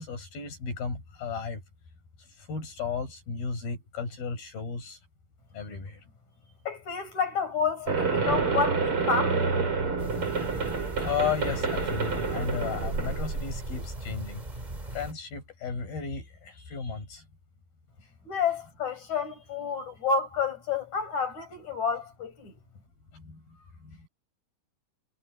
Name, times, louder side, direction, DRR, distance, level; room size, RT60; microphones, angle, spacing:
voice 1, 0.0-1.6 2.4-5.0 5.5-6.0 11.0-14.4 14.9-17.3 23.1-24.1, left 6 dB, 70° left, 8.9 m, -34 dB
voice 2, 6.7-9.5 18.3-22.5, left 5 dB, 50° left, 6.1 m, -29 dB
sound 1, 7.9-13.9, right 4 dB, 35° right, 5.6 m, -28 dB
sound 2, 10.0-15.1, right 1 dB, 15° right, 1.7 m, -39 dB
omnidirectional pair, 4.5 m